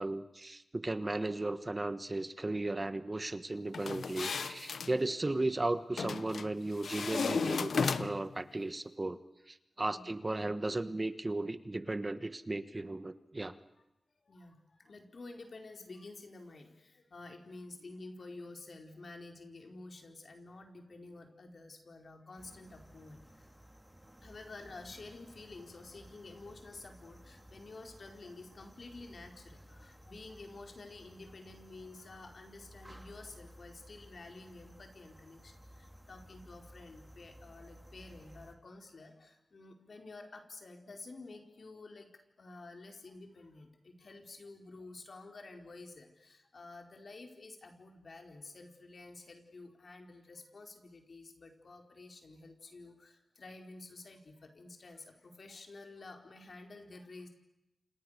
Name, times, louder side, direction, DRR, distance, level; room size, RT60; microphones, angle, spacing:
voice 1, 0.0-9.2 9.5-13.5, right 2 dB, 30° right, 12 dB, 1.3 m, -35 dB
sound 1, 3.7-4.9 6.0-6.5 6.8-8.3, left 5 dB, 85° left, 0.9 m, -34 dB
voice 2, 14.2-23.5 24.2-42.1 42.4-57.3, left 3 dB, 60° left, 4 dB, 4.7 m, -51 dB
sound 2, 22.4-38.6, equal, 5° right, 3.1 m, -57 dB
29.5 x 28.0 x 6.8 m, 0.91 s
wide cardioid pair, 90°, 0 cm